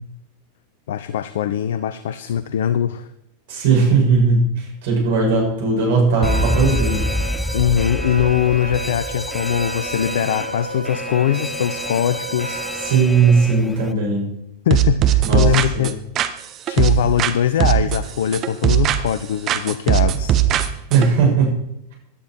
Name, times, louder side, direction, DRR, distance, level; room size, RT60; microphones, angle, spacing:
voice 1, 0.9-3.1 7.5-12.6 14.7-16.0 16.7-20.4, left 10 dB, 55° left, 14 dB, 0.7 m, -21 dB
voice 2, 3.5-7.1 12.7-14.3 15.2-15.9 20.9-21.5, right 4 dB, 55° right, 0 dB, 6.7 m, -18 dB
Alarm, 6.2-13.9, left 1 dB, 5° left, 0.4 m, -27 dB
Trumpet, 6.2-13.1, right 4 dB, 80° right, 0.7 m, -33 dB
sound 1, 14.7-17.3 17.6-19.2 19.5-21.1, right 11 dB, 35° right, 1.1 m, -19 dB
17.0 x 11.5 x 4.6 m, 0.82 s
figure-of-eight pair, 90°, 0 cm